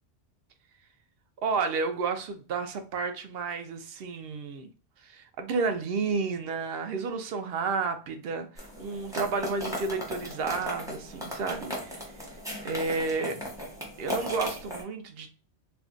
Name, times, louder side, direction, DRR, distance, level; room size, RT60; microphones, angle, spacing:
voice 1, 1.4-4.7 5.0-12.1 12.6-13.4 14.0-15.3, right 4 dB, 65° right, 0.7 m, -31 dB
sound 1, 8.6-14.8, equal, 5° right, 0.7 m, -37 dB
2.5 x 2.2 x 3.7 m
omnidirectional pair, 1.2 m